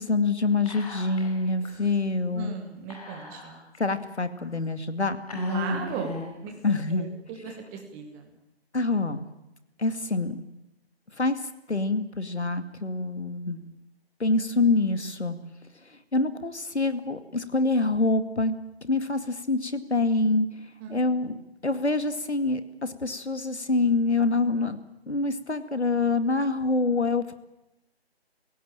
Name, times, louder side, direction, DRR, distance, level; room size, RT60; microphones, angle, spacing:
voice 1, 0.0-2.6 3.8-5.2 6.6-7.1 8.7-9.3 9.8-10.4 11.2-11.4 11.7-13.6 14.2-15.4 16.1-18.6 18.8-20.5 20.9-24.8 25.1-27.3, left 3 dB, 90° left, 10 dB, 2.3 m, -26 dB
Whispering, 0.7-1.4 1.7-1.8 2.9-3.8 4.4-4.5 5.3-6.5, left 2 dB, 35° left, 4.8 m, -34 dB
voice 2, 2.3-3.5 5.5-6.1 6.4-6.5 6.9-8.3 20.8-21.0, right 6 dB, 5° right, 3 dB, 1.2 m, -37 dB
27.0 x 17.0 x 8.8 m, 0.92 s
figure-of-eight pair, 160°, 32 cm